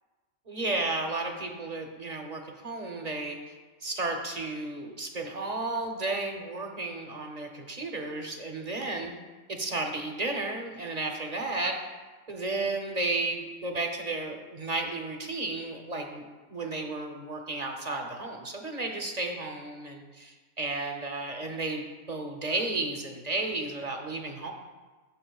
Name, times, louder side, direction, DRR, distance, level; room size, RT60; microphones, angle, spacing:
voice 1, 0.5-3.4 3.8-9.1 9.5-11.8 12.3-16.2 16.5-24.5, right 2 dB, 40° right, 3 dB, 0.7 m, -33 dB
15.0 x 6.2 x 2.3 m, 1.3 s
omnidirectional pair, 1.4 m